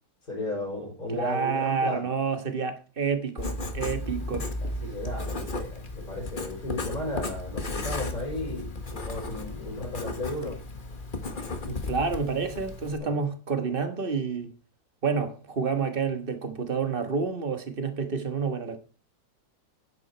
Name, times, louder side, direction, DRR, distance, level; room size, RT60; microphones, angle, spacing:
voice 1, 0.3-2.1 4.6-10.6 11.5-11.8 13.0-13.2, left 1 dB, 50° left, 4.9 m, -34 dB
voice 2, 1.1-4.5 11.9-14.5 15.0-18.8, right 5 dB, 30° right, 1.4 m, -29 dB
Writing, 3.4-13.0, left 2 dB, 30° left, 1.4 m, -35 dB
9.9 x 9.1 x 4.5 m
omnidirectional pair, 2.0 m